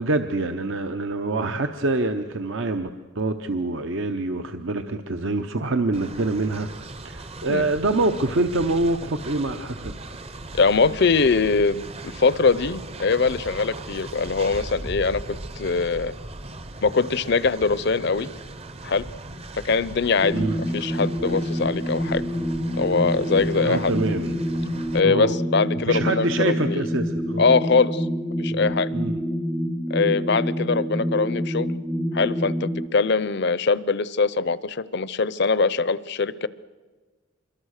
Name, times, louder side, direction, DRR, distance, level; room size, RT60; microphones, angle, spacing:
voice 1, 0.0-10.0 20.3-20.6 23.6-24.5 25.0-25.4 25.8-27.5 28.6-29.2, right 2 dB, 60° right, 8 dB, 0.9 m, -26 dB
Train, 5.9-25.0, right 2 dB, 30° right, 0.8 m, -38 dB
voice 2, 10.5-16.1 16.8-18.3 18.8-19.1 19.5-20.4 20.7-22.2 22.8-23.9 24.9-26.8 27.4-28.1 28.4-28.9 29.9-31.7 32.1-36.5, left 4 dB, 50° left, 17 dB, 0.6 m, -22 dB
sound 1, 20.2-32.9, equal, ahead, 0.6 m, -27 dB
26.0 x 22.5 x 6.5 m, 1.3 s
head